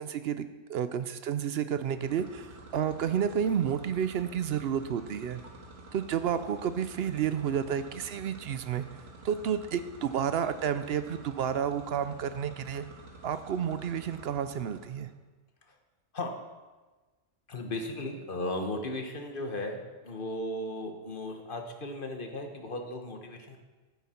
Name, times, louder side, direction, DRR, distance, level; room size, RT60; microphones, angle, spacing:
voice 1, 0.0-5.4 5.9-8.8 9.2-12.9 13.2-15.1, right 8 dB, 60° right, 11 dB, 0.7 m, -31 dB
sound 1, 1.8-15.1, right 2 dB, 85° right, 1.9 m, -50 dB
voice 2, 17.5-23.6, left 1 dB, 45° left, 4 dB, 1.3 m, -36 dB
11.5 x 9.6 x 4.3 m, 1.3 s
omnidirectional pair, 1.3 m